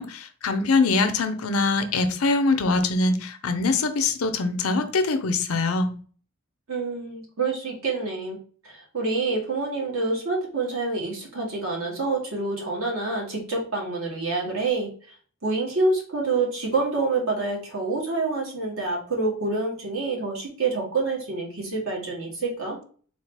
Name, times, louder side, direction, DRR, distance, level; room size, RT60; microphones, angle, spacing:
voice 1, 0.0-5.9, left 3 dB, 85° left, 9 dB, 0.6 m, -23 dB
voice 2, 6.7-8.4 8.6-14.9 15.4-22.8, right 3 dB, 80° right, -2 dB, 1.8 m, -27 dB
3.9 x 2.8 x 3.3 m, 0.42 s
head